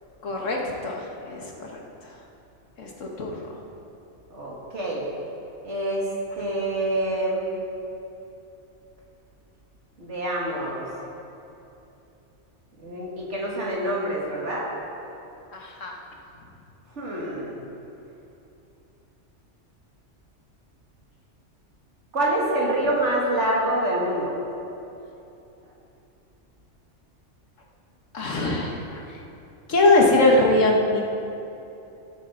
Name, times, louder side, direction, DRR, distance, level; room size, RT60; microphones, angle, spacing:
voice 1, 0.2-0.6 0.8-1.8 2.8-2.9 3.2-3.4 15.5-15.9 28.1-29.0 29.7-31.0, left 2 dB, 80° left, -1 dB, 1.8 m, -21 dB
voice 2, 4.3-5.1 5.6-7.5 10.0-10.9 12.8-14.7 17.0-17.6 22.1-24.3, right 1 dB, 65° right, -4 dB, 2.5 m, -26 dB
16.0 x 9.1 x 3.9 m, 2.8 s
omnidirectional pair, 1.3 m